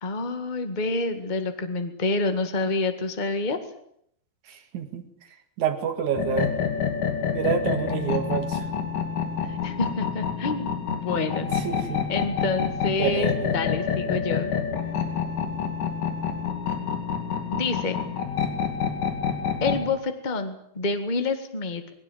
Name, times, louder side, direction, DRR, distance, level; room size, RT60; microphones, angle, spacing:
voice 1, 0.0-3.6 9.4-11.5 12.1-14.5 17.5-18.0 19.6-21.8, left 3 dB, 75° left, 8 dB, 0.4 m, -28 dB
voice 2, 4.5-5.0 5.6-6.5 7.3-8.6 11.4-12.0 13.0-13.6, right 7 dB, 55° right, 7 dB, 3.1 m, -28 dB
sound 1, 6.1-19.9, left 7 dB, 60° left, 4.0 m, -28 dB
20.5 x 17.5 x 9.1 m, 0.71 s
omnidirectional pair, 4.4 m